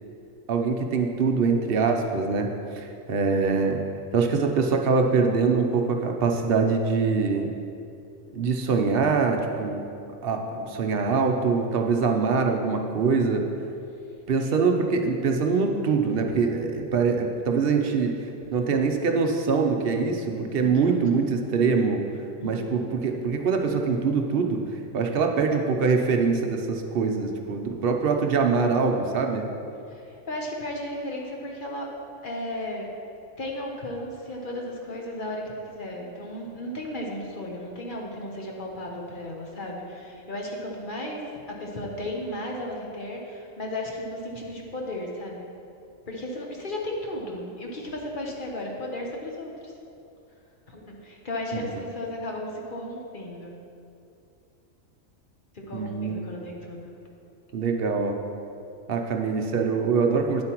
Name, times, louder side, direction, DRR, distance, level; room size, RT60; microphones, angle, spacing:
voice 1, 0.5-3.8 4.1-7.5 8.3-9.8 10.2-13.4 14.3-18.2 18.5-22.0 22.4-24.6 24.9-29.5 55.7-56.2 57.5-58.2 58.9-60.4, right 4 dB, 55° right, 3 dB, 0.7 m, -24 dB
voice 2, 20.6-21.4 22.4-22.7 29.9-31.9 32.2-32.9 33.4-41.2 41.5-45.5 46.1-49.7 50.7-53.5 55.5-56.9, left 1 dB, 45° left, -1 dB, 1.0 m, -35 dB
9.7 x 7.5 x 3.0 m, 2.6 s
omnidirectional pair, 1.4 m